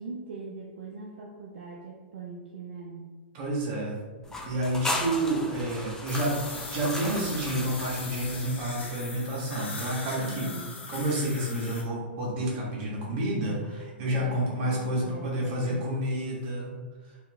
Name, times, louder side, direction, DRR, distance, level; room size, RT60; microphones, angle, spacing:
voice 1, 0.0-3.1 10.2-10.7 14.0-15.9, right 4 dB, 70° right, -1 dB, 0.4 m, -41 dB
voice 2, 3.3-4.0 4.5-10.5 10.9-16.7, right 1 dB, 45° right, -4 dB, 1.0 m, -29 dB
sound 1, 4.2-8.8, left 1 dB, 10° left, 0.3 m, -36 dB
sound 2, 6.1-11.8, left 3 dB, 85° left, 0.5 m, -40 dB
2.8 x 2.4 x 2.2 m, 1.3 s
hypercardioid pair, 115°, 6 cm